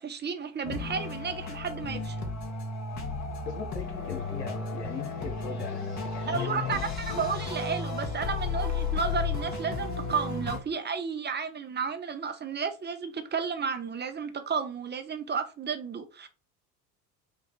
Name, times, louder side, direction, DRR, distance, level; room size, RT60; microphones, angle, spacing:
voice 1, 0.0-2.2 6.3-16.3, right 6 dB, 20° right, 0.9 m, -32 dB
sound 1, 0.6-10.6, left 4 dB, 35° left, 1.9 m, -33 dB
voice 2, 3.4-7.3, left 6 dB, 80° left, 1.3 m, -40 dB
5.4 x 2.6 x 3.8 m
figure-of-eight pair, 70°, 48 cm